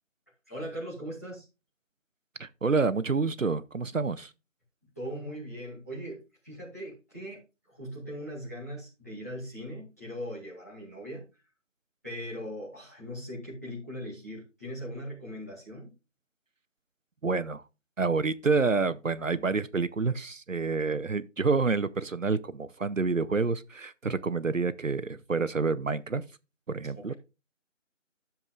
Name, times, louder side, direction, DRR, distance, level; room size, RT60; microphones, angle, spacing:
voice 1, 0.5-1.5 4.9-7.4 7.7-11.2 12.0-15.9 27.0-27.1, equal, 10° left, 2.3 m, -40 dB
voice 2, 2.4-4.3 17.2-17.6 18.0-26.2 26.7-27.1, right 4 dB, 80° right, 0.8 m, -28 dB
12.0 x 7.2 x 2.4 m
figure-of-eight pair, 170°, 39 cm